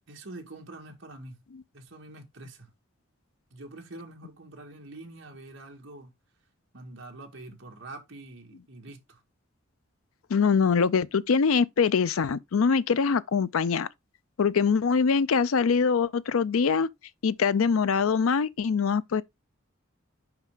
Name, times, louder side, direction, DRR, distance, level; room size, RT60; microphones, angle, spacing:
voice 1, 0.1-1.4 1.7-2.7 3.5-6.1 6.7-9.2, right 2 dB, 65° right, 1.8 m, -45 dB
voice 2, 10.3-13.9 14.4-16.9 17.2-19.2, left 5 dB, 85° left, 0.5 m, -23 dB
5.7 x 5.5 x 3.7 m
head